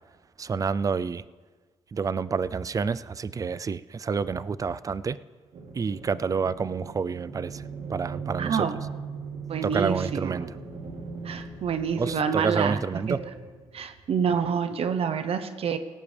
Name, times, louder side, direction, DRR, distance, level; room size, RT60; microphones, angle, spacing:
voice 1, 0.4-1.2 1.9-5.2 5.7-7.6 7.9-8.7 9.6-10.6 12.0-13.2, right 5 dB, 30° right, 17 dB, 0.4 m, -28 dB
sound 1, 5.5-14.3, right 5 dB, 80° right, 3.0 m, -39 dB
voice 2, 8.4-8.8 9.5-10.5 11.2-12.8 13.1-13.2 13.7-15.8, right 6 dB, 60° right, 10 dB, 0.9 m, -27 dB
17.5 x 16.0 x 3.4 m, 1.4 s
cardioid pair, 100°, 11 cm